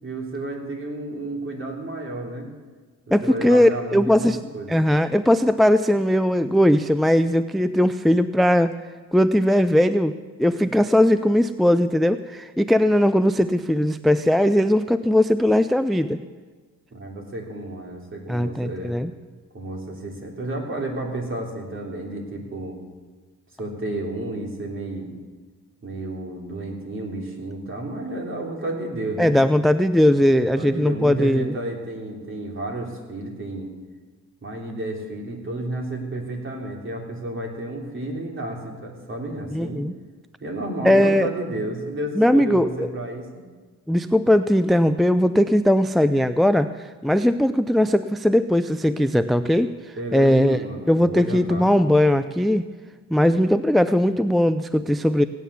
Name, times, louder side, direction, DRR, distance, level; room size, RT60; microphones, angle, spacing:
voice 1, 0.0-2.5 3.2-4.8 16.9-19.0 19.5-22.8 23.6-25.1 25.8-29.4 30.6-33.7 34.4-39.8 40.4-43.4 50.0-51.7, right 1 dB, 40° right, 1 dB, 3.4 m, -31 dB
voice 2, 3.1-4.4 4.7-8.7 9.1-16.2 18.3-19.1 29.2-31.5 39.5-39.9 40.8-41.3 42.2-42.9 43.9-50.6 50.9-52.7 53.1-55.2, left 1 dB, ahead, 12 dB, 0.4 m, -19 dB
17.0 x 9.3 x 7.0 m, 1.4 s
cardioid pair, 90°, 30 cm